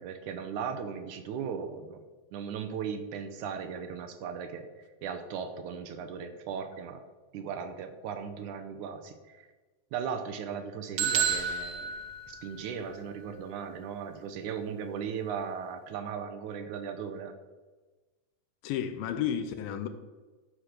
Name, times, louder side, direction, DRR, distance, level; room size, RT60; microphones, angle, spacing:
voice 1, 0.0-2.0 2.3-4.7 5.0-7.0 7.3-9.5 9.9-11.9 12.3-17.4, right 7 dB, 70° right, 8 dB, 2.0 m, -37 dB
sound 1, 11.0-12.9, right 7 dB, 90° right, 1.3 m, -31 dB
voice 2, 18.6-19.9, left 9 dB, 80° left, 8 dB, 2.4 m, -32 dB
13.5 x 4.9 x 6.5 m, 1.3 s
omnidirectional pair, 4.1 m